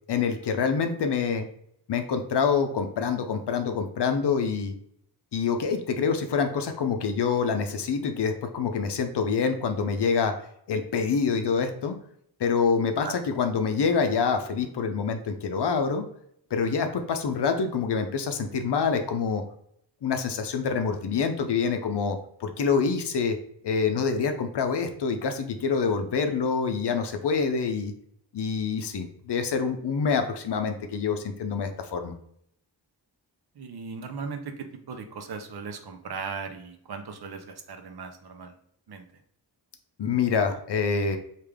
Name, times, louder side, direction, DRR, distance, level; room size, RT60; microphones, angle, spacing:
voice 1, 0.1-1.5 1.9-4.7 5.3-10.3 10.7-12.0 12.4-16.0 16.5-19.4 20.0-23.4 23.6-27.9 28.3-32.1 40.0-41.2, left 5 dB, 65° left, 6 dB, 0.6 m, -26 dB
voice 2, 33.6-38.5 38.9-39.0, right 5 dB, 65° right, 6 dB, 0.6 m, -38 dB
3.3 x 2.4 x 3.4 m, 0.69 s
wide cardioid pair, 65°, 43 cm